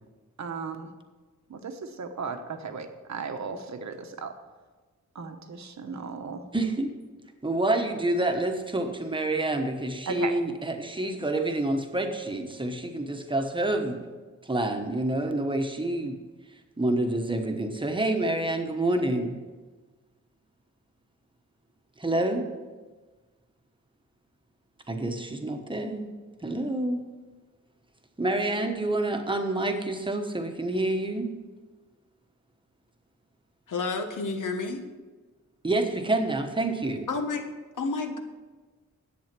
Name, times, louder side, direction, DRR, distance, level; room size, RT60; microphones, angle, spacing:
voice 1, 0.4-0.9 1.5-4.3 5.1-6.4 10.1-10.4, right 5 dB, 65° right, 6 dB, 1.1 m, -36 dB
voice 2, 6.5-6.9 7.4-14.0 14.4-16.2 16.8-19.4 22.0-22.4 24.9-26.1 26.4-27.0 28.2-31.3 35.6-37.1, right 2 dB, 15° right, 4 dB, 1.1 m, -28 dB
voice 3, 33.7-34.9 37.1-37.4 37.8-38.2, left 3 dB, 80° left, 6 dB, 1.3 m, -30 dB
11.0 x 8.5 x 6.0 m, 1.3 s
wide cardioid pair, 170°, 31 cm